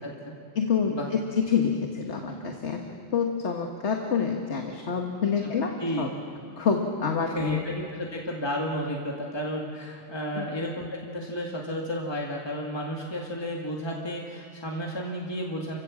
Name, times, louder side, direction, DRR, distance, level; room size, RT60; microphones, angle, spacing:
voice 1, 0.0-0.3 0.9-1.1 5.8-6.1 7.3-15.8, equal, 25° left, -2 dB, 2.0 m, -32 dB
voice 2, 0.6-2.9 3.1-6.1 6.6-7.6 10.3-10.5, left 6 dB, 85° left, 2 dB, 1.7 m, -27 dB
30.0 x 16.0 x 7.5 m, 2.3 s
omnidirectional pair, 1.1 m